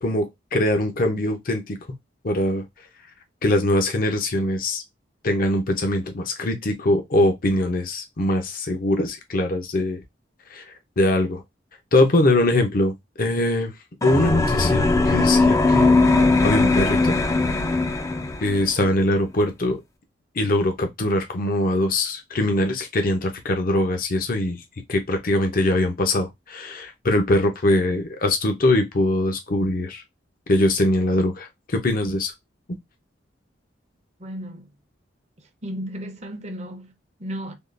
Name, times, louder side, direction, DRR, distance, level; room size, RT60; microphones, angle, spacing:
voice 1, 0.0-1.8 2.2-2.6 3.4-4.8 5.2-10.0 10.5-11.4 11.9-13.7 14.0-15.9 16.4-17.2 18.4-19.8 20.3-24.6 24.9-30.0 30.5-32.3 32.7-32.8, left 1 dB, 50° left, 0.7 m, -22 dB
sound 1, 14.0-18.7, left 3 dB, 15° left, 0.4 m, -19 dB
voice 2, 34.2-34.7 35.6-37.5, equal, 40° right, 0.7 m, -34 dB
3.6 x 2.4 x 2.4 m
head